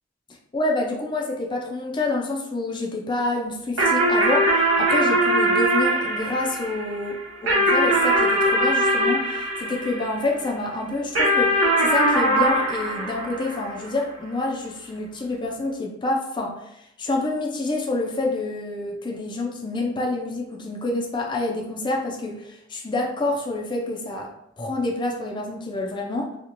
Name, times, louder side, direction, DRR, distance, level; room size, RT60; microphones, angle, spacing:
voice 1, 0.5-16.6 17.0-24.3 24.6-26.4, left 2 dB, 25° left, 0 dB, 0.4 m, -27 dB
sound 1, 3.8-10.5 11.2-14.0, right 1 dB, 80° right, 0.9 m, -21 dB
2.9 x 2.4 x 2.5 m, 0.78 s
head